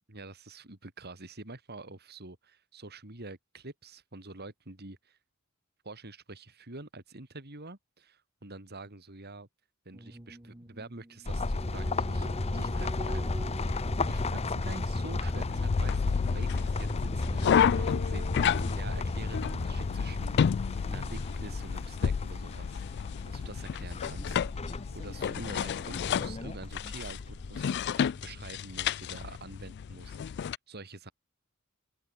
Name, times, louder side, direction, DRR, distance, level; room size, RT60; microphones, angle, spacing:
voice 1, 0.1-5.2 5.8-9.5 9.8-12.3 12.5-22.8 23.3-24.4 24.7-27.7 28.0-31.1, right 2 dB, 50° right, 3.4 m, -47 dB
sound 1, 9.9-14.7, right 1 dB, 15° right, 1.4 m, -46 dB
sound 2, 11.3-27.6, left 2 dB, 30° left, 0.7 m, -34 dB
sound 3, 15.3-30.6, left 7 dB, 55° left, 0.3 m, -31 dB
open air
head